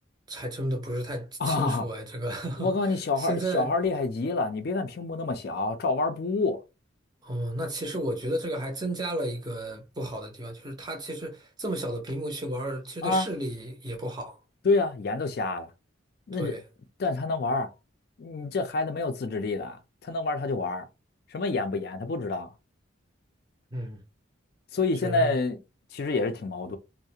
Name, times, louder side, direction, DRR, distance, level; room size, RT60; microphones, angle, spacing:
voice 1, 0.3-3.7 7.2-14.4 16.4-16.6 23.7-24.0 25.0-25.3, right 1 dB, 20° right, 0.5 m, -33 dB
voice 2, 1.4-1.8 2.6-6.6 13.0-13.3 14.6-15.7 16.3-16.5 17.0-17.7 18.2-19.8 20.0-20.9 21.3-22.5 24.7-25.6 25.9-26.8, left 3 dB, 50° left, 0.3 m, -27 dB
2.3 x 2.0 x 2.7 m
head